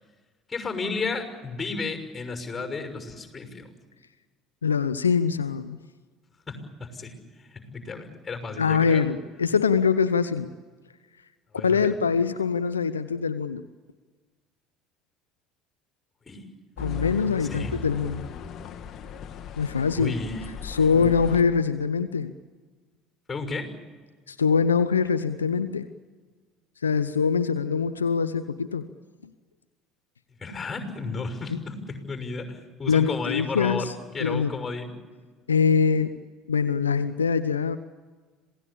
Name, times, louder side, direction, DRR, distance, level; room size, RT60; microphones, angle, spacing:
voice 1, 0.5-3.7 6.5-7.1 7.5-9.1 11.5-12.0 16.2-16.4 17.4-17.7 19.9-21.2 23.3-23.7 30.4-34.9, left 4 dB, 20° left, 6 dB, 6.2 m, -33 dB
voice 2, 4.6-5.8 8.6-10.5 11.6-13.6 16.8-18.3 19.6-20.1 20.6-22.3 24.3-25.9 26.8-28.9 32.9-33.9 34.2-34.5 35.5-36.2 36.5-37.8, left 6 dB, 85° left, 12 dB, 0.7 m, -23 dB
sound 1, 16.8-21.4, left 6 dB, 45° left, 1.8 m, -38 dB
27.0 x 17.5 x 8.6 m, 1.4 s
figure-of-eight pair, 65°, 0 cm